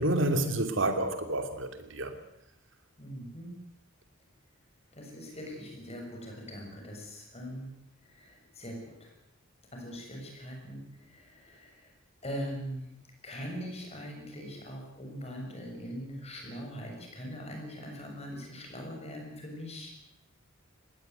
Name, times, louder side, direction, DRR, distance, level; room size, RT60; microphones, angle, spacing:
voice 1, 0.0-2.1, right 1 dB, 60° right, 7 dB, 2.8 m, -29 dB
voice 2, 3.0-3.5 4.9-7.7 8.0-9.1 9.7-11.9 12.2-12.9 13.2-19.9, equal, 30° left, 1 dB, 6.9 m, -41 dB
20.5 x 17.0 x 9.3 m, 0.80 s
head